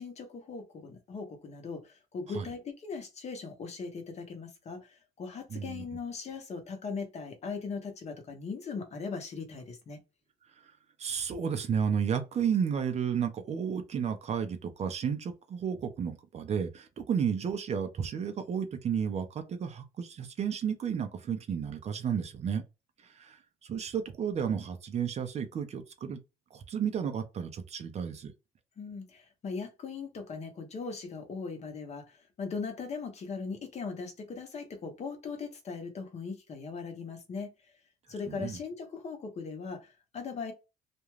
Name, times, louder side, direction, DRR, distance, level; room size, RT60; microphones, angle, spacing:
voice 1, 0.0-10.0 28.8-37.5 38.1-40.5, left 5 dB, 40° left, 0.8 m, -39 dB
voice 2, 5.5-5.8 11.0-22.6 23.1-23.4 23.6-26.2 26.5-28.3 38.3-38.6, right 7 dB, 40° right, 0.5 m, -32 dB
2.4 x 2.2 x 3.1 m
cardioid pair, 110°, 17 cm